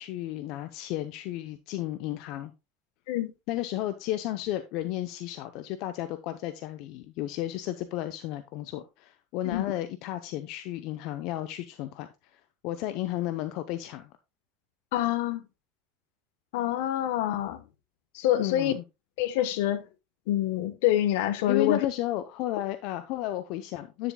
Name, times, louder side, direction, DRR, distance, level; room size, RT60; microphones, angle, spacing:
voice 1, 0.0-2.5 3.5-14.1 18.4-18.8 21.5-24.1, left 14 dB, 60° left, 0.7 m, -33 dB
voice 2, 14.9-15.4 16.5-17.6 18.1-18.7 19.2-19.8 20.3-21.8, left 12 dB, 75° left, 1.0 m, -26 dB
9.7 x 7.1 x 2.2 m
supercardioid pair, 135°, 0 cm